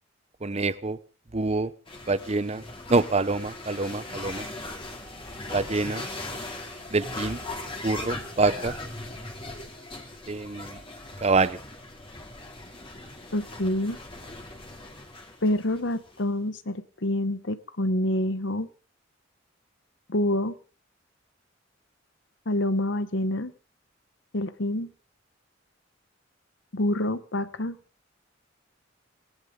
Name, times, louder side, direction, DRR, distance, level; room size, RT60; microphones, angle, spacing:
voice 1, 0.4-1.0 1.3-1.7 2.1-2.6 2.9-4.5 5.5-6.0 6.9-7.4 7.8-8.7 10.3-10.8 11.2-11.6, right 3 dB, 35° right, 16 dB, 0.8 m, -26 dB
sound 1, 1.9-16.2, left 2 dB, 30° left, 2.7 m, -39 dB
voice 2, 13.3-14.0 15.4-18.7 20.1-20.5 22.5-23.5 24.3-24.9 26.7-27.8, left 1 dB, 65° left, 13 dB, 1.1 m, -27 dB
19.0 x 18.5 x 3.8 m, 0.38 s
head